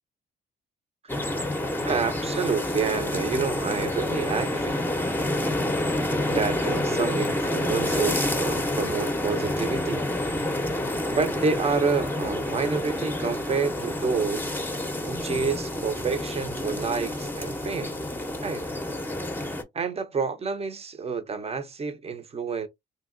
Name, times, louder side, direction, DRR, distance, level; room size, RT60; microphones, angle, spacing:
sound 1, 1.1-19.6, left 1 dB, 10° left, 0.7 m, -28 dB
voice 1, 1.9-4.8 6.3-10.1 10.7-10.8 11.1-14.5 15.1-18.0 18.4-18.6 19.7-22.7, right 5 dB, 30° right, 0.6 m, -28 dB
2.8 x 2.7 x 2.6 m
cardioid pair, 90°, 20 cm